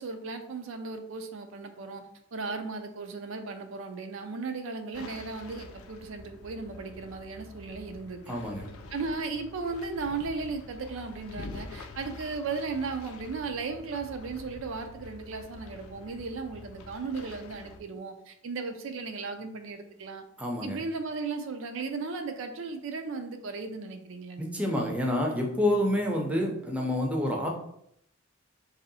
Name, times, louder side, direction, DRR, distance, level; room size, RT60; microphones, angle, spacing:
voice 1, 0.0-2.0 2.3-8.4 8.9-20.2 20.6-24.7, right 4 dB, 65° right, 6 dB, 0.4 m, -36 dB
sound 1, 4.9-17.8, left 3 dB, 80° left, 0.4 m, -46 dB
voice 2, 8.3-8.8 20.4-20.8 24.4-27.5, left 1 dB, 5° right, -1 dB, 0.5 m, -28 dB
3.1 x 2.7 x 4.0 m, 0.73 s
head